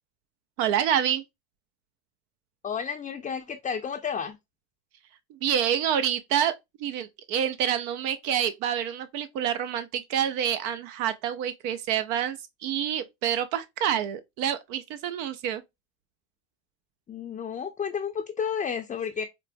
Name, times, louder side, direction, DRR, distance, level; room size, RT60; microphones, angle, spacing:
voice 1, 0.6-1.2 5.3-6.5 6.8-15.6, right 9 dB, 80° right, 0.5 m, -27 dB
voice 2, 2.6-4.4 17.1-19.2, left 7 dB, 20° left, 0.4 m, -31 dB
4.3 x 2.1 x 2.4 m
supercardioid pair, 85°, 34 cm